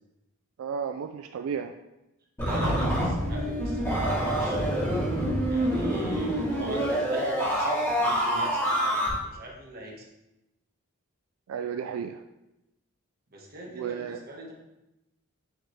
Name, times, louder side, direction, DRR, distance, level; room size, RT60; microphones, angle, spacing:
voice 1, 0.6-1.7 11.5-12.2 13.7-14.2, right 7 dB, 85° right, 7 dB, 0.3 m, -33 dB
sound 1, 2.4-9.1, equal, 15° left, 2.2 m, -26 dB
voice 2, 2.4-4.6 5.5-9.0 9.3-9.9 13.3-14.5, right 1 dB, 45° right, -2 dB, 1.4 m, -40 dB
6.3 x 4.7 x 3.2 m, 0.92 s
head